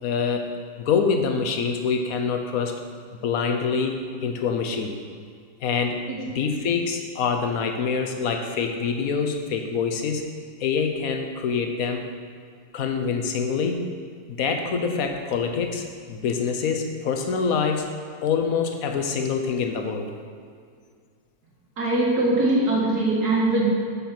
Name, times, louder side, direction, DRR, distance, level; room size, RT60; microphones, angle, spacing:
voice 1, 0.0-2.8 3.2-5.0 5.6-10.2 10.6-12.1 12.7-13.9 14.3-17.9 18.2-20.1, left 5 dB, 65° left, 4 dB, 1.2 m, -25 dB
voice 2, 21.8-23.7, right 2 dB, 70° right, -4 dB, 2.3 m, -21 dB
8.4 x 5.4 x 6.1 m, 2.2 s
omnidirectional pair, 1.8 m